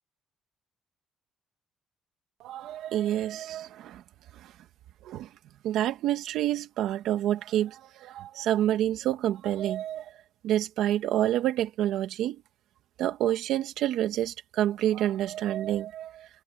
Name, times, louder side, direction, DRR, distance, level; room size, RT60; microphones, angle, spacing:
voice 1, 2.4-4.0 4.3-4.5 5.0-5.3 5.6-10.1 10.4-12.4 13.0-16.3, right 12 dB, 80° right, 2.3 m, -28 dB
cardioid pair, 110°, 0 cm